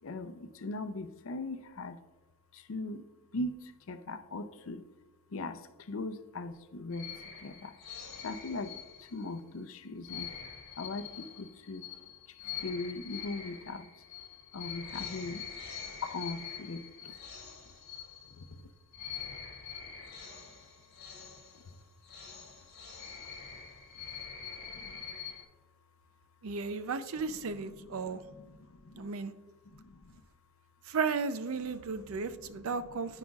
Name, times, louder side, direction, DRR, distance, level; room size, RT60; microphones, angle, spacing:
voice 1, 0.0-2.0 2.5-4.8 5.3-7.7 8.2-10.4 10.8-11.9 12.3-13.9 14.5-15.5 16.0-17.2 17.7-17.8 18.2-18.7 21.5-21.8 22.6-22.7 24.7-25.0 27.1-29.1 29.6-30.2 31.6-33.2, left 2 dB, 65° left, 10 dB, 0.6 m, -41 dB
sound 1, 6.9-9.4 10.0-18.6 18.9-25.4, left 7 dB, 45° left, 1.3 m, -45 dB
voice 2, 26.4-28.2 28.9-29.3 30.9-33.2, right 5 dB, 75° right, 12 dB, 0.5 m, -34 dB
13.5 x 4.9 x 2.4 m, 1.2 s
head